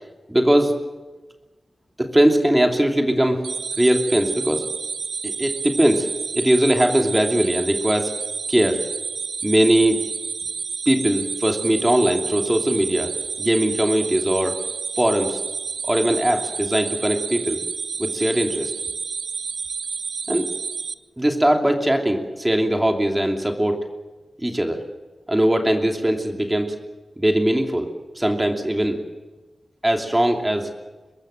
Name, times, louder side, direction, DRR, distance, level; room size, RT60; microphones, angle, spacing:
voice 1, 0.3-0.9 2.0-3.4 3.8-4.7 5.2-8.1 8.5-8.8 9.4-10.0 10.9-14.6 15.0-15.4 15.8-17.6 18.0-18.7 20.3-20.5 21.2-23.8 24.4-24.8 25.3-26.7 27.2-29.0 29.8-30.7, right 1 dB, 15° right, 3 dB, 2.9 m, -20 dB
sound 1, 3.4-20.9, right 5 dB, 80° right, 0.8 m, -30 dB
24.0 x 21.5 x 7.7 m, 1.2 s
wide cardioid pair, 100°, 0 cm